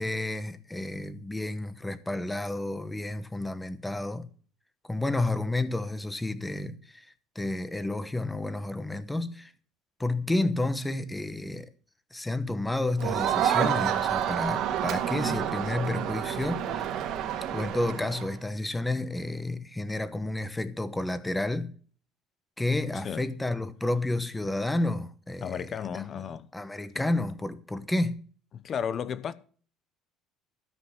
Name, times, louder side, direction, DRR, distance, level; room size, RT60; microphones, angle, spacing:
voice 1, 0.0-4.3 4.9-7.1 7.3-9.5 10.0-11.7 12.1-16.9 17.5-21.7 22.6-26.0 26.5-28.2, left 2 dB, 5° left, 1.0 m, -31 dB
Crowd, 13.0-18.3, right 10 dB, 55° right, 2.1 m, -29 dB
voice 2, 22.9-23.3 25.4-26.5 28.5-29.3, left 8 dB, 35° left, 0.9 m, -34 dB
13.5 x 8.1 x 6.2 m
cardioid pair, 150°, 0 cm